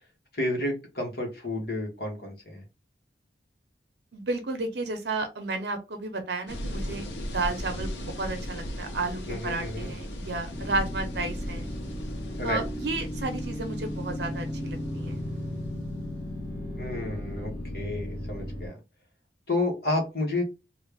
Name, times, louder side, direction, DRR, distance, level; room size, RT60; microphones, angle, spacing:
voice 1, 0.3-2.6 9.3-9.9 12.4-12.6 16.8-18.8 19.5-20.4, left 2 dB, 55° left, 0 dB, 1.3 m, -31 dB
voice 2, 4.1-7.9 8.2-11.7 12.4-15.2, right 3 dB, 70° right, 6 dB, 0.7 m, -32 dB
sound 1, 6.5-16.2, equal, 85° left, 0.8 m, -38 dB
sound 2, 10.5-18.7, left 1 dB, 10° left, 1.0 m, -35 dB
3.2 x 2.4 x 3.4 m, 0.27 s
head